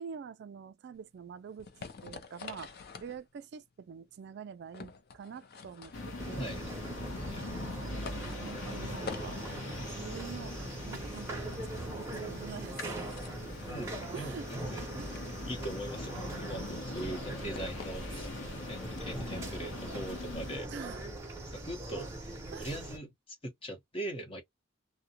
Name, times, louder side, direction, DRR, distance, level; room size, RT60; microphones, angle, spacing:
voice 1, 0.0-1.7 2.0-2.7 3.0-6.6 7.5-9.4 9.9-10.6 10.9-13.0 14.1-14.5 14.9-15.2 20.7-21.1 22.5-22.8, right 6 dB, 60° right, 0.3 m, -46 dB
sound 1, 1.0-19.3, left 5 dB, 55° left, 0.5 m, -50 dB
sound 2, 5.9-20.6, left 2 dB, 90° left, 0.9 m, -42 dB
sound 3, 6.2-23.0, right 1 dB, 15° right, 0.7 m, -41 dB
voice 2, 6.4-6.7 7.3-7.5 13.6-15.0 15.5-18.3 18.7-21.0 21.5-24.4, right 1 dB, 30° left, 0.9 m, -41 dB
2.3 x 2.1 x 2.7 m
head